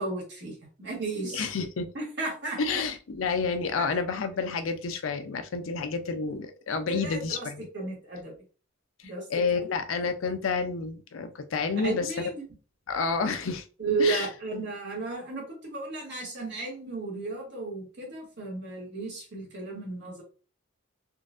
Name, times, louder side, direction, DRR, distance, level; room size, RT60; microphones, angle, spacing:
voice 1, 0.0-1.5 1.9-2.8 3.8-3.9 6.9-7.5 7.7-8.3 9.0-9.2 11.8-12.4 13.8-20.2, right 3 dB, 55° right, 1.5 m, -33 dB
voice 2, 1.3-1.9 2.6-7.7 9.3-12.3 12.9-13.6 14.0-14.3, left 4 dB, 80° left, 0.5 m, -29 dB
3.8 x 2.4 x 2.5 m
head